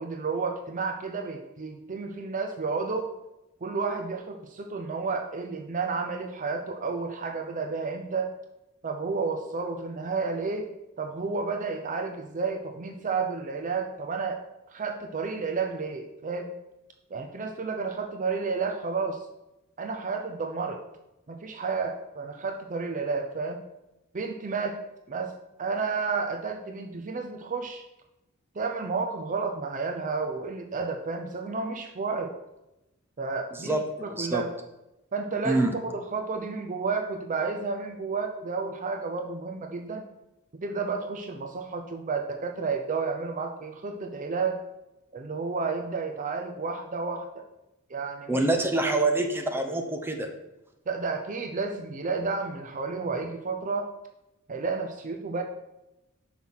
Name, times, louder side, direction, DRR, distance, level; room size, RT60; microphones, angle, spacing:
voice 1, 0.0-3.1 3.6-8.3 8.8-10.7 11.0-14.4 14.7-16.5 17.1-19.2 19.8-20.8 21.3-23.6 24.1-24.8 25.1-25.3 25.6-27.8 28.6-32.3 33.2-34.5 35.1-40.1 40.6-44.6 45.1-47.4 47.9-48.4 48.8-49.1 50.9-53.9 54.5-55.4, right 4 dB, 35° right, 4 dB, 0.6 m, -31 dB
voice 2, 33.6-34.4 35.4-35.7 48.3-50.3, right 2 dB, 10° right, 4 dB, 0.8 m, -26 dB
5.9 x 5.6 x 6.2 m, 0.93 s
head